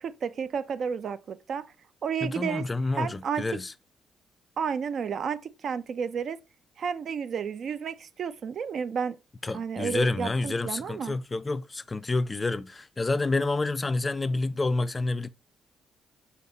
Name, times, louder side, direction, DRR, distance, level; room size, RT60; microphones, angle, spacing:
voice 1, 0.0-1.7 2.0-2.6 2.9-3.5 4.6-6.4 6.8-9.2 9.5-11.2, right 6 dB, 60° right, 0.4 m, -31 dB
voice 2, 2.2-3.7 9.4-15.3, left 3 dB, 25° left, 0.3 m, -28 dB
5.3 x 2.4 x 3.9 m
cardioid pair, 90°, 0 cm